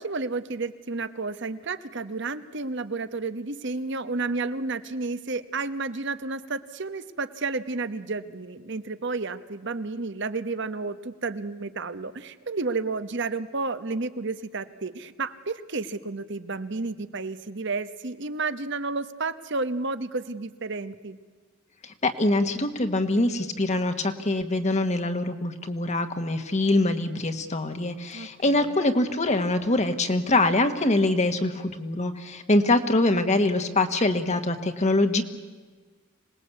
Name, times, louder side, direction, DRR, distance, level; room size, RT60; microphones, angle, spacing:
voice 1, 0.0-21.2 28.1-28.8, right 3 dB, 60° right, 13 dB, 1.1 m, -31 dB
voice 2, 21.8-35.2, left 2 dB, 35° left, 7 dB, 1.4 m, -24 dB
26.0 x 19.5 x 8.3 m, 1.4 s
head